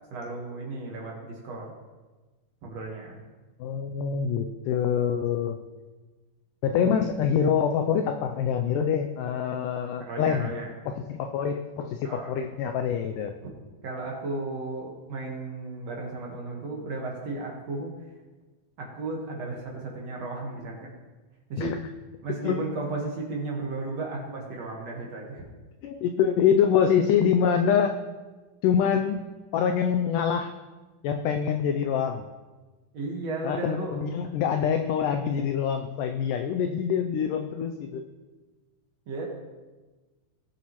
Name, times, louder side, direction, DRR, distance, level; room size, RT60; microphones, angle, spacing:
voice 1, 0.1-1.7 2.6-3.2 10.0-10.7 12.0-12.3 13.4-13.5 13.8-17.9 18.8-20.9 21.5-21.8 22.2-25.4 32.9-34.0 39.1-39.3, right 3 dB, 55° right, -2 dB, 2.2 m, -34 dB
voice 2, 3.6-5.6 6.6-10.5 10.9-13.3 21.6-21.8 22.4-22.7 25.8-28.0 28.6-29.3 29.5-30.5 31.0-32.3 33.4-38.0, left 7 dB, 90° left, 6 dB, 1.8 m, -25 dB
19.5 x 7.2 x 3.1 m, 1.2 s
omnidirectional pair, 4.4 m